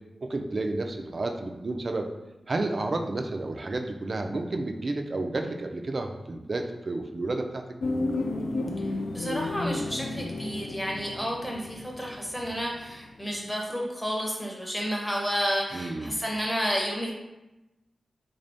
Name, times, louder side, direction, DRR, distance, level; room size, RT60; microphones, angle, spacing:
voice 1, 0.2-2.1 2.5-7.6 15.7-16.2, right 2 dB, 45° right, 4 dB, 0.3 m, -31 dB
sound 1, 7.8-13.1 13.4-13.5, left 2 dB, 80° left, 0.3 m, -32 dB
voice 2, 9.1-17.1, equal, ahead, -2 dB, 0.6 m, -31 dB
3.6 x 2.6 x 3.3 m, 0.99 s
wide cardioid pair, 115°, 0 cm